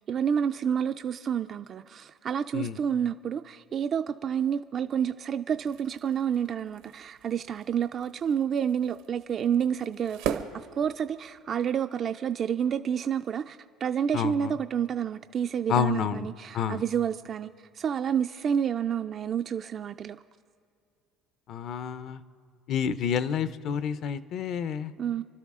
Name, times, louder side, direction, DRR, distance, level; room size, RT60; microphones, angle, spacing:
voice 1, 0.1-20.2 25.0-25.2, right 8 dB, 35° right, 8 dB, 0.3 m, -29 dB
sound 1, 5.5-11.5, right 9 dB, 80° right, 1.0 m, -40 dB
voice 2, 14.1-14.5 15.7-16.3 16.5-16.8 21.5-22.2 22.7-24.9, left 8 dB, 50° left, 14 dB, 0.6 m, -29 dB
28.5 x 12.0 x 3.7 m, 2.3 s
cardioid pair, 145°, 0 cm